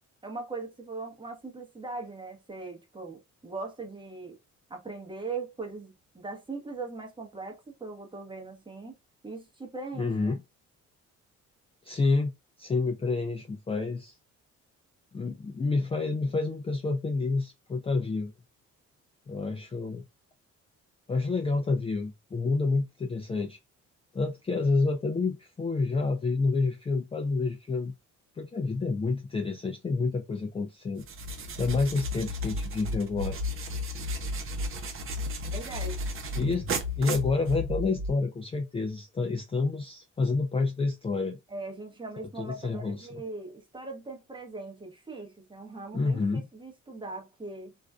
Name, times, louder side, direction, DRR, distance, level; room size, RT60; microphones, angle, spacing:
voice 1, 0.2-4.4 4.7-9.0 9.2-10.3 35.4-36.0 41.5-47.7, right 3 dB, 15° right, 0.8 m, -40 dB
voice 2, 10.0-10.4 11.8-12.3 12.6-14.2 15.1-18.3 19.3-20.0 21.1-23.6 24.1-27.9 28.3-31.0 31.6-33.4 36.4-36.7 37.0-41.4 42.4-43.1 45.9-46.5, left 3 dB, 20° left, 0.4 m, -28 dB
sound 1, 31.0-38.0, right 2 dB, 45° right, 0.6 m, -37 dB
sound 2, 31.9-34.7 35.1-38.1, left 3 dB, 60° right, 1.0 m, -35 dB
2.5 x 2.2 x 2.2 m
cardioid pair, 90°, 30 cm